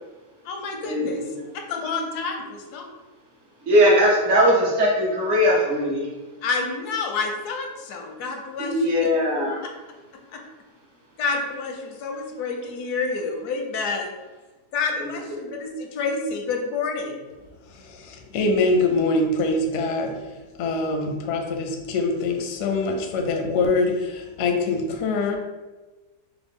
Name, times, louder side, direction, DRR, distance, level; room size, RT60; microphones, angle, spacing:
voice 1, 0.4-1.2 1.7-2.9 6.4-8.8 10.3-10.4 11.2-14.1 14.7-17.2, left 4 dB, 85° left, 2 dB, 1.2 m, -28 dB
voice 2, 3.7-6.1 8.7-9.6 15.0-15.1, equal, 55° right, -4 dB, 1.3 m, -19 dB
voice 3, 17.7-20.3 20.6-25.4, left 3 dB, 65° left, 3 dB, 0.7 m, -24 dB
4.7 x 2.1 x 3.5 m, 1.2 s
omnidirectional pair, 1.6 m